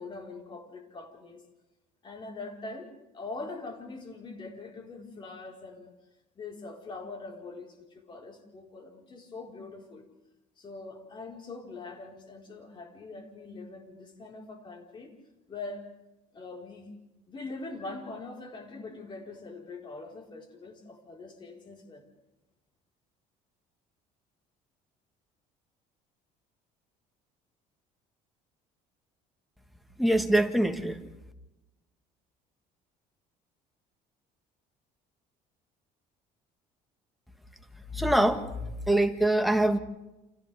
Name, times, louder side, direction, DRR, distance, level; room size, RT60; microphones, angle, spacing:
voice 1, 0.0-1.4 2.0-5.9 6.3-10.0 10.6-15.1 15.5-15.9 16.3-16.9 17.3-22.0, left 3 dB, 35° left, 0 dB, 4.7 m, -43 dB
voice 2, 30.0-31.0 37.9-38.4 38.9-39.8, right 1 dB, ahead, 7 dB, 1.6 m, -23 dB
30.0 x 28.0 x 3.6 m, 1.0 s
cardioid pair, 120°, 15 cm